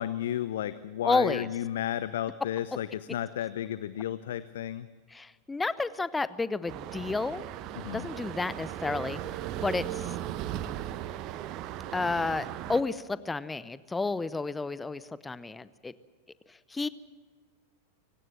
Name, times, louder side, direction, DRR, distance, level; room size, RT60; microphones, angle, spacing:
voice 1, 0.0-4.9 7.8-8.1, left 11 dB, 60° left, 16 dB, 0.6 m, -33 dB
voice 2, 1.0-1.5 5.1-7.5 7.9-9.2 9.6-10.2 11.9-15.9 16.5-16.9, left 3 dB, 10° left, 18 dB, 0.7 m, -31 dB
sound 1, 6.7-12.8, right 12 dB, 40° right, 1.0 m, -37 dB
25.0 x 17.0 x 7.7 m, 1.5 s
figure-of-eight pair, 90°, 0 cm